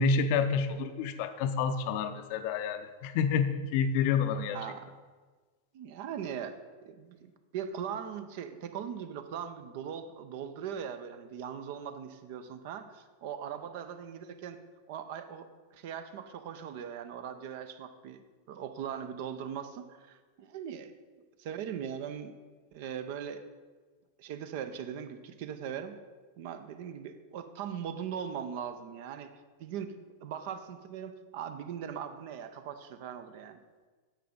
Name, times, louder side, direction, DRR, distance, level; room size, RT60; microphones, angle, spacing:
voice 1, 0.0-4.6, left 5 dB, 45° left, 10 dB, 0.6 m, -28 dB
voice 2, 4.5-4.9 5.7-6.6 6.8-14.6 14.9-18.2 18.5-20.9 21.4-22.3 22.7-23.4 24.2-25.9 26.4-29.3 29.6-29.9 30.2-33.6, right 8 dB, 50° right, 10 dB, 0.6 m, -40 dB
10.0 x 7.7 x 3.8 m, 1.4 s
figure-of-eight pair, 90°, 0 cm